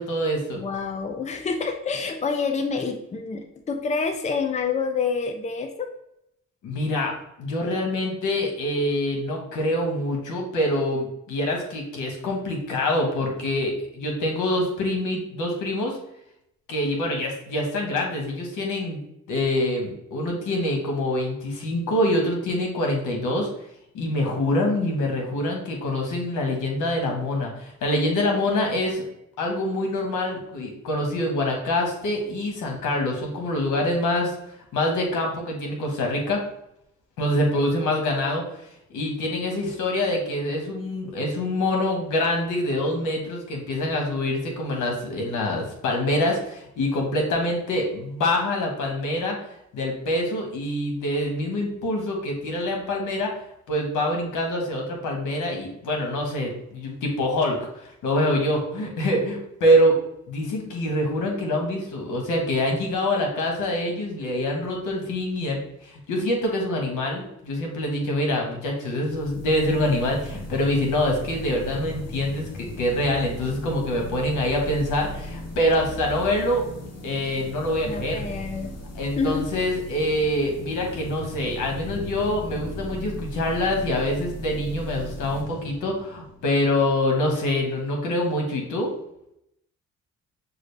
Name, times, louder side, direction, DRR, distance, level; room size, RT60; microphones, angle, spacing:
voice 1, 0.0-0.6 6.6-7.1 7.4-16.0 16.7-19.0 19.3-23.5 23.9-29.0 29.4-34.3 34.7-36.4 37.2-38.4 38.9-49.4 49.7-53.3 53.7-60.0 60.3-76.7 77.0-78.2 78.9-88.9, left 1 dB, 80° left, 1 dB, 1.4 m, -25 dB
voice 2, 0.6-5.9 77.8-78.7 79.2-79.5 80.4-80.5, left 5 dB, 25° left, 5 dB, 0.6 m, -27 dB
sound 1, 69.1-86.6, left 1 dB, 55° left, 1.3 m, -37 dB
6.2 x 2.5 x 3.3 m, 0.78 s
cardioid pair, 90°, 30 cm